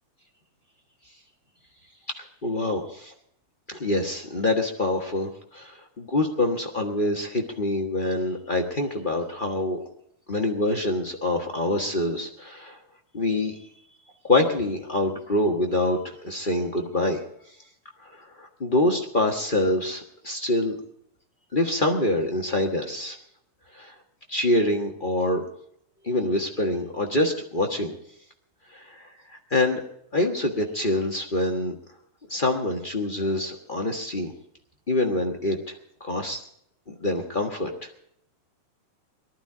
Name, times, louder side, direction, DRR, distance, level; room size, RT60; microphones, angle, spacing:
voice 1, 2.2-3.1 3.7-9.8 10.3-12.8 13.1-13.6 14.3-17.2 18.0-20.8 21.5-23.2 23.7-23.9 24.3-25.4 26.0-27.9 28.7-29.8 30.1-31.7 32.3-34.3 34.9-35.7 36.0-36.4 36.9-37.9, left 2 dB, 40° left, 2 dB, 0.7 m, -26 dB
19.0 x 12.5 x 5.0 m, 0.72 s
omnidirectional pair, 3.5 m